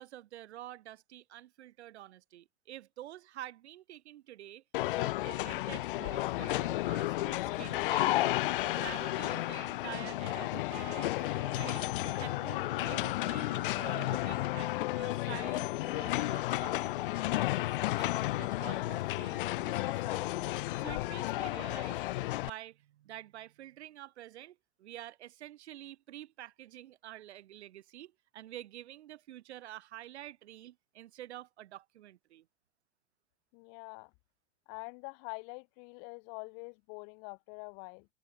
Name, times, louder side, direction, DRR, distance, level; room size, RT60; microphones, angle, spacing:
voice 1, 0.0-4.6 4.9-8.3 8.6-11.9 12.2-14.7 15.0-17.1 18.0-20.5 20.8-22.0 22.3-32.5, right 13 dB, 80° right, 1.9 m, -48 dB
sound 1, 4.7-22.5, left 17 dB, 50° left, 1.0 m, -32 dB
Wind instrument woodwind instrument, 7.5-15.2, right 40 dB or more, 30° right, 1.0 m, -53 dB
voice 2, 33.5-34.1 34.7-38.1, left 40 dB or more, 35° left, 2.6 m, -45 dB
open air
supercardioid pair, 175°, 33 cm